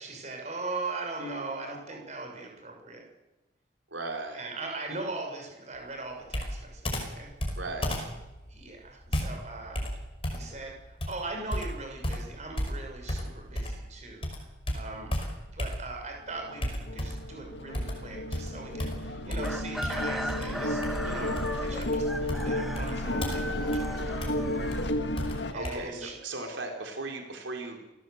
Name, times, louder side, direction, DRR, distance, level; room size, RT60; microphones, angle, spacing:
voice 1, 0.0-3.0 4.3-7.3 8.5-9.9 10.3-14.3 14.7-15.1 15.5-24.4 25.5-26.2, right 3 dB, 40° right, 2 dB, 6.3 m, -40 dB
voice 2, 3.9-4.5 7.6-7.9 25.5-27.9, right 2 dB, 90° right, 3 dB, 4.1 m, -37 dB
Computer keyboard, 6.3-13.9 14.2-16.1 16.6-17.3 17.7-25.7, equal, 30° left, 5.5 m, -34 dB
sound 1, 16.3-25.5, left 1 dB, 70° left, 1.9 m, -33 dB
Chicken rooster, 19.4-25.3, equal, ahead, 1.2 m, -38 dB
28.0 x 17.0 x 8.1 m, 1.0 s
head